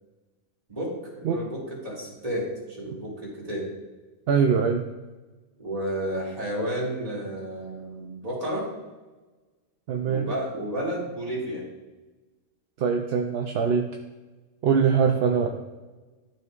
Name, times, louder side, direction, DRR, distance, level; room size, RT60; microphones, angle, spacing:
voice 1, 0.7-3.7 5.6-8.7 10.0-11.6, right 1 dB, 30° right, -5 dB, 2.2 m, -31 dB
voice 2, 4.3-4.9 9.9-10.3 12.8-13.9 14.6-15.5, right 6 dB, 60° right, 3 dB, 0.7 m, -22 dB
12.0 x 4.4 x 2.4 m, 1.2 s
omnidirectional pair, 1.4 m